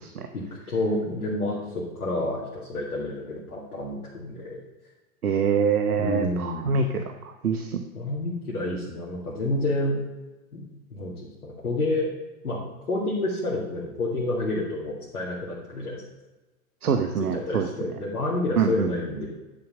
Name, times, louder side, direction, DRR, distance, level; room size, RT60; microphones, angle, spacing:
voice 1, 0.3-4.6 6.0-6.8 7.9-10.0 10.5-12.1 12.4-16.0 17.2-19.2, left 2 dB, 80° left, -5 dB, 2.1 m, -29 dB
voice 2, 5.2-7.8 16.8-17.7 18.6-18.9, right 6 dB, 80° right, 6 dB, 0.9 m, -25 dB
10.0 x 5.8 x 5.3 m, 1.1 s
figure-of-eight pair, 105°, 44 cm